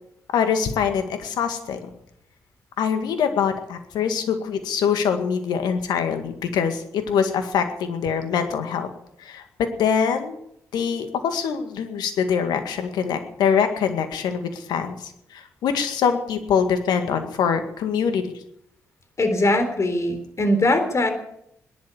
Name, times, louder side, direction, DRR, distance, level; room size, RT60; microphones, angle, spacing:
voice 1, 0.3-1.8 2.8-8.9 9.2-10.4 10.7-18.3, left 7 dB, 75° left, 7 dB, 2.0 m, -24 dB
voice 2, 19.2-21.1, left 1 dB, 45° left, 8 dB, 3.6 m, -21 dB
19.0 x 11.0 x 7.0 m, 0.76 s
hypercardioid pair, 40°, 7 cm